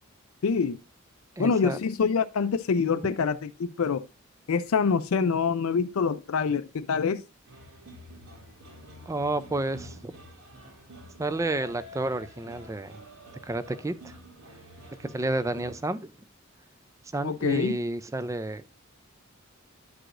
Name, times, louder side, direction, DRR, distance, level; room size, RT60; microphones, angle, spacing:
voice 1, 0.4-0.8 1.4-4.0 4.5-7.2 17.2-17.8, left 5 dB, 80° left, 0.4 m, -25 dB
voice 2, 1.4-1.8 9.1-10.1 11.2-12.9 13.5-13.9 15.0-16.1 17.1-18.6, right 2 dB, 15° right, 0.3 m, -30 dB
sound 1, 7.4-15.8, equal, 85° right, 2.0 m, -48 dB
11.0 x 4.8 x 2.5 m
head